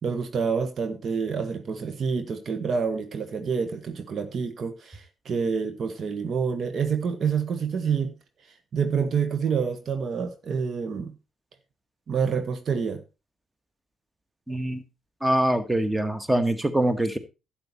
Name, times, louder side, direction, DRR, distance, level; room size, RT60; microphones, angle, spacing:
voice 1, 0.0-8.2 8.7-11.1 12.1-13.0, right 6 dB, 50° right, 9 dB, 1.3 m, -27 dB
voice 2, 14.5-14.8 15.2-17.2, right 1 dB, 10° right, 11 dB, 1.7 m, -24 dB
12.0 x 7.9 x 4.3 m, 0.29 s
hypercardioid pair, 45°, 0 cm